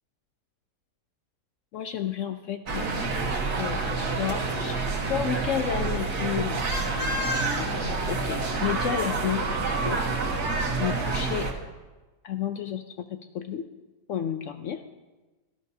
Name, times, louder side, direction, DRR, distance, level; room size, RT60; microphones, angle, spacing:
voice 1, 1.7-3.0 3.5-10.1 10.8-11.5 12.2-13.7 14.1-14.8, left 9 dB, 70° left, 8 dB, 0.7 m, -32 dB
sound 1, 2.7-11.5, right 3 dB, 75° right, 1.8 m, -28 dB
18.0 x 11.5 x 2.8 m, 1.2 s
omnidirectional pair, 1.7 m